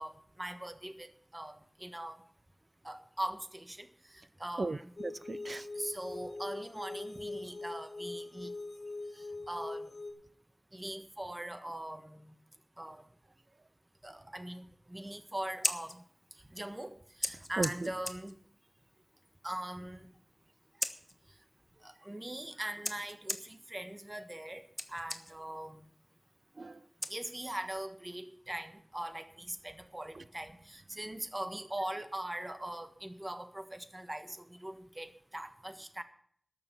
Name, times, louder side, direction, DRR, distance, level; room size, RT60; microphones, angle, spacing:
voice 1, 0.0-2.2 2.8-3.9 4.1-4.9 5.8-8.5 9.1-9.9 10.7-12.2 12.8-13.0 14.0-16.0 16.5-18.3 19.4-20.1 21.8-24.6 24.9-25.8 27.1-36.0, right 1 dB, 25° right, 10 dB, 1.4 m, -41 dB
voice 2, 4.6-5.7 17.6-17.9 26.6-26.8, right 3 dB, 65° right, 17 dB, 0.6 m, -36 dB
sound 1, 5.0-10.1, left 2 dB, 45° left, 3.9 m, -42 dB
Scissors, 15.4-27.8, left 1 dB, 20° left, 1.2 m, -43 dB
12.5 x 6.9 x 9.3 m, 0.62 s
wide cardioid pair, 50°, 0 cm